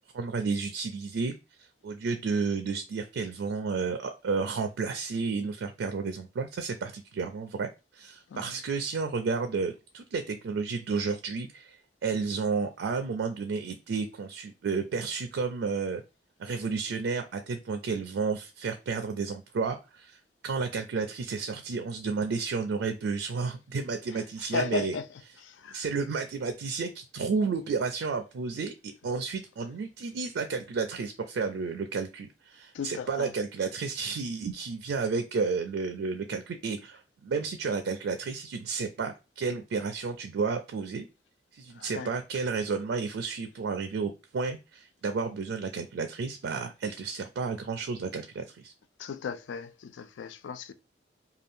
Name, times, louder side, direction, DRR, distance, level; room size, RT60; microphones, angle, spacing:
voice 1, 0.1-16.0 16.4-20.2 20.4-25.0 25.7-41.1 41.5-48.7, right 4 dB, 70° right, 0.4 m, -32 dB
voice 2, 24.5-25.1 25.4-25.8 32.7-33.3 41.8-42.1 49.0-50.7, left 5 dB, 75° left, 0.3 m, -36 dB
2.6 x 2.3 x 3.4 m
head